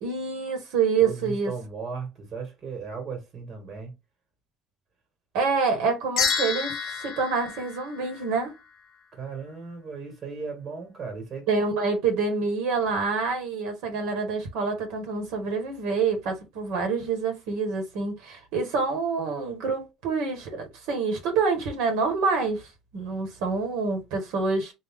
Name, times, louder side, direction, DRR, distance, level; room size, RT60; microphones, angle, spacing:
voice 1, 0.0-1.5 5.3-8.5 11.5-22.7 22.9-24.7, right 4 dB, 75° right, 1.4 m, -27 dB
voice 2, 1.0-3.9 9.1-11.5, right 5 dB, 35° right, 1.7 m, -36 dB
sound 1, 6.2-8.6, left 6 dB, 50° left, 0.9 m, -29 dB
3.6 x 2.6 x 3.6 m
cardioid pair, 155°, 0 cm